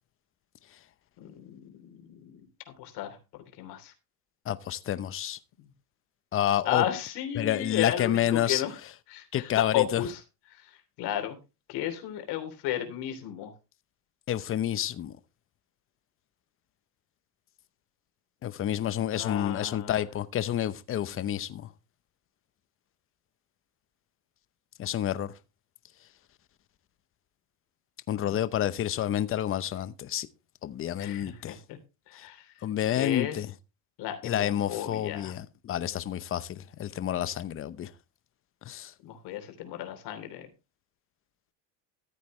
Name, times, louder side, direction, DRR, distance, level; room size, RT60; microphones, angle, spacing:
voice 1, 1.2-2.4 2.7-3.9 6.6-8.8 9.1-10.2 10.5-11.4 11.7-13.5 19.1-20.0 28.2-28.4 31.0-31.8 32.1-32.5 32.9-33.4 34.0-35.4 39.0-40.5, left 11 dB, 55° left, 3.3 m, -34 dB
voice 2, 4.5-5.4 6.3-6.8 7.4-8.6 9.3-10.0 14.3-15.2 18.4-21.7 24.8-25.3 28.1-30.3 30.6-31.6 32.2-32.3 32.6-33.5 34.2-37.9 38.6-38.9, left 11 dB, 25° left, 0.8 m, -29 dB
14.5 x 8.2 x 3.1 m
supercardioid pair, 125°, 48 cm